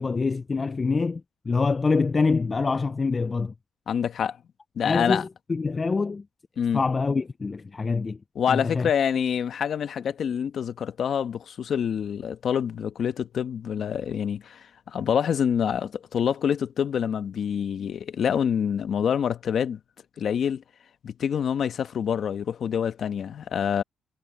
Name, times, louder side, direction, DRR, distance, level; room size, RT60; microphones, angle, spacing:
voice 1, 0.0-3.5 4.8-6.2 6.7-8.2 8.5-8.9, left 4 dB, 30° left, 0.4 m, -25 dB
voice 2, 3.9-4.4 4.8-5.2 6.6-6.8 8.3-19.8 20.2-20.6 21.0-23.8, left 8 dB, 60° left, 1.3 m, -26 dB
cardioid pair, 90°, 0 cm